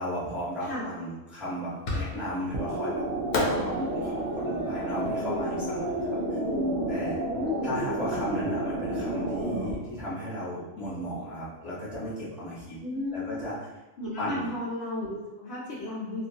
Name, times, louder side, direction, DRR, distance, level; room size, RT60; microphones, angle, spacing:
voice 1, 0.0-3.0 3.4-6.4 6.9-7.2 7.6-12.7 13.1-13.6 14.2-14.4, equal, ahead, -11 dB, 1.1 m, -35 dB
Fireworks, 1.8-2.5 3.3-6.4, left 2 dB, 90° left, 1.0 m, -33 dB
sound 1, 2.5-9.7, right 1 dB, 60° right, 0.9 m, -30 dB
voice 2, 7.2-7.8 12.8-13.4 14.0-16.3, left 2 dB, 65° left, -7 dB, 0.9 m, -34 dB
2.6 x 2.4 x 2.8 m, 1.0 s
omnidirectional pair, 1.3 m